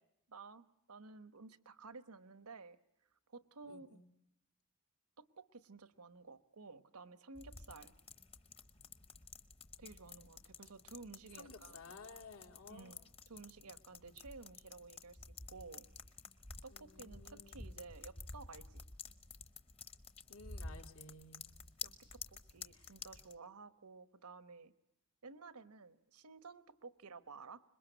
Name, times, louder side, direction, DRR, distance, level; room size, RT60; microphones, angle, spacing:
voice 1, 0.3-2.8 3.3-4.0 5.2-7.9 9.8-12.0 12.7-15.2 15.5-15.9 16.6-18.8 21.8-24.7 25.2-27.6, right 4 dB, 90° right, 13 dB, 1.1 m, -54 dB
voice 2, 3.7-4.1 11.3-13.0 16.7-17.8 20.3-21.5 22.7-22.9, left 3 dB, 75° left, 4 dB, 2.6 m, -56 dB
sound 1, 7.3-23.3, left 4 dB, 25° left, 0.9 m, -52 dB
26.0 x 22.0 x 8.0 m, 0.79 s
head